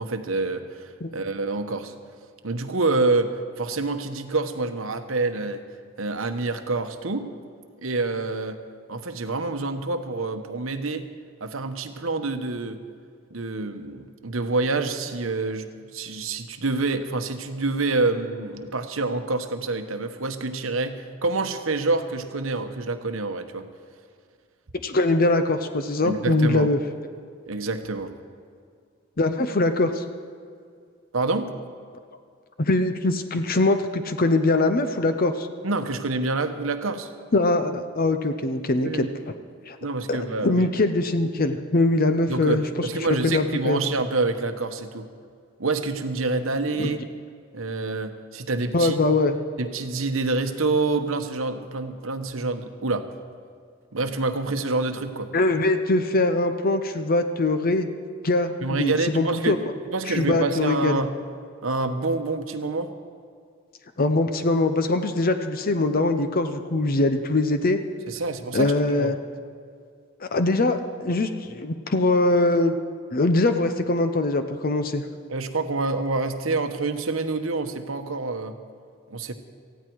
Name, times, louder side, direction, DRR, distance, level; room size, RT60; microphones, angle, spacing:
voice 1, 0.0-1.9 2.4-5.6 6.0-7.3 7.8-8.6 8.9-11.0 11.4-12.8 13.3-23.7 26.0-26.7 27.5-28.1 31.1-31.5 35.6-37.1 38.8-39.1 39.8-40.7 42.3-45.1 45.6-47.0 47.5-49.0 49.6-53.1 53.9-55.3 58.6-59.6 59.9-61.1 61.6-62.9 68.1-69.1 75.3-78.6 79.1-79.3, right 3 dB, 90° right, 7 dB, 1.1 m, -27 dB
voice 2, 24.8-26.8 29.2-30.0 32.6-35.5 37.3-39.1 39.7-39.8 40.1-42.9 43.2-43.8 46.8-46.9 48.7-49.4 55.3-57.9 58.2-59.6 60.1-61.0 64.0-67.8 68.5-69.2 70.2-72.8 73.1-75.0, left 2 dB, 45° left, 8 dB, 0.7 m, -22 dB
18.5 x 15.0 x 4.7 m, 2.2 s
head